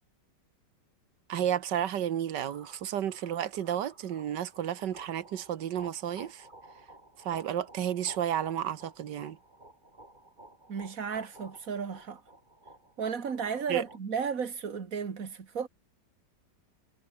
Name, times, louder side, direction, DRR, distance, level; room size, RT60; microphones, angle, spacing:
voice 1, 1.3-6.4 7.2-9.4 13.7-13.8, right 10 dB, 75° right, 1.7 m, -32 dB
sound 1, 2.4-14.0, right 1 dB, 25° right, 4.7 m, -53 dB
voice 2, 10.7-12.2 13.0-15.7, right 6 dB, 50° right, 2.3 m, -34 dB
omnidirectional pair, 1.9 m